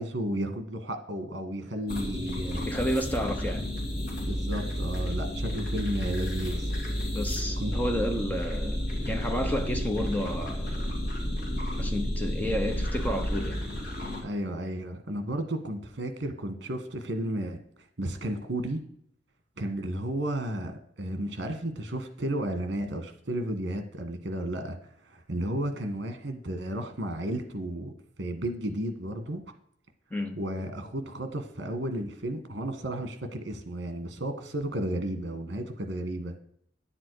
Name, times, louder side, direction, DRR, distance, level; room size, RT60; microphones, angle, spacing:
voice 1, 0.0-2.7 4.3-6.7 7.6-7.7 14.2-17.6 18.0-18.8 19.6-24.8 25.1-27.9 28.2-29.4 30.4-36.3, right 1 dB, 65° right, 1.5 m, -33 dB
sound 1, 1.9-14.2, equal, 50° left, 2.7 m, -31 dB
voice 2, 2.7-3.7 7.1-10.9 11.8-13.6 30.1-30.4, equal, 10° left, 0.9 m, -31 dB
10.0 x 7.6 x 4.8 m
head